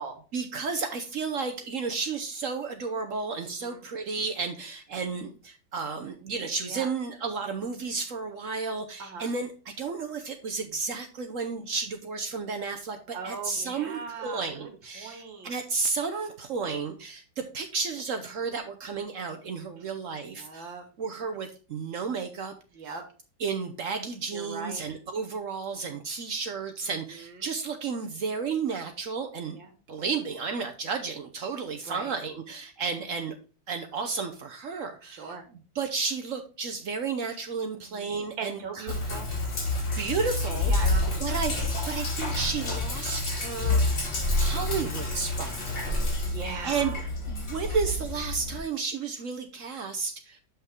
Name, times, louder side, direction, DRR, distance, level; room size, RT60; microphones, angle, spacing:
voice 1, 0.3-22.5 22.8-23.0 23.4-29.6 29.9-33.3 33.7-35.4 35.7-39.0 40.0-40.9 41.2-44.0 44.4-46.2 46.6-47.0 47.3-50.4, right 5 dB, 65° right, 6 dB, 0.8 m, -32 dB
voice 2, 9.0-9.3 13.1-15.5 20.2-20.8 22.7-23.0 24.3-24.8 26.8-27.5 29.6-29.7 31.9-32.1 35.1-35.4 37.9-39.3 40.7-41.2 46.2-47.0, right 4 dB, 80° right, 5 dB, 2.3 m, -39 dB
Sink (filling or washing), 38.9-48.6, left 2 dB, 70° left, 3.2 m, -28 dB
7.5 x 5.6 x 3.6 m, 0.37 s
omnidirectional pair, 2.1 m